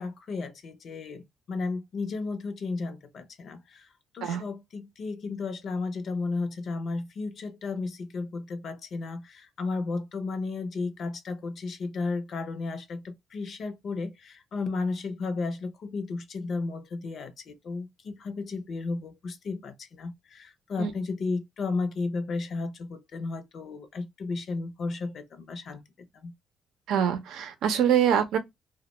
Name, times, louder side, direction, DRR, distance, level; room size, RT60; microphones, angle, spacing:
voice 1, 0.0-3.9 4.1-25.8 26.1-26.3, left 3 dB, 60° left, 0.5 m, -33 dB
voice 2, 26.9-28.4, right 9 dB, 85° right, 0.6 m, -24 dB
2.2 x 2.1 x 2.9 m
cardioid pair, 90°, 0 cm